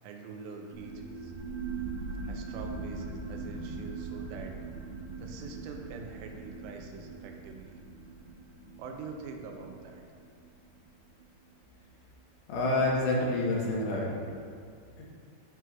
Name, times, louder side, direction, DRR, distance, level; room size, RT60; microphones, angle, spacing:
voice 1, 0.0-1.3 2.2-4.6 5.2-7.8 8.8-10.0, right 4 dB, 85° right, 2 dB, 2.8 m, -44 dB
sound 1, 0.7-11.9, right 4 dB, 65° right, 2.4 m, -41 dB
voice 2, 12.5-14.2 15.0-15.1, left 2 dB, 85° left, -4 dB, 3.4 m, -28 dB
10.0 x 6.1 x 2.3 m, 2.2 s
omnidirectional pair, 4.9 m